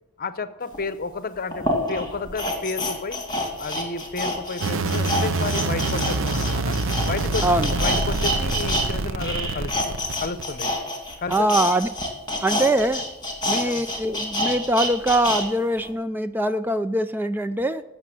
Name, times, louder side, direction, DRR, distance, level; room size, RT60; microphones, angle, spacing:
voice 1, 0.2-3.2 3.6-6.8 7.0-9.8 10.2-10.7 11.2-11.5 13.4-13.8, left 3 dB, 45° left, 13 dB, 0.8 m, -31 dB
sound 1, 0.7-0.8 1.5-8.9 9.1-15.4 15.8-15.9, left 1 dB, 20° left, 2.6 m, -27 dB
sound 2, 4.6-10.7, right 3 dB, 70° right, 0.7 m, -26 dB
voice 2, 7.4-7.7 11.3-11.9 12.4-13.0 13.5-17.8, right 1 dB, 10° right, 11 dB, 0.3 m, -23 dB
15.0 x 6.6 x 7.7 m, 1.0 s
head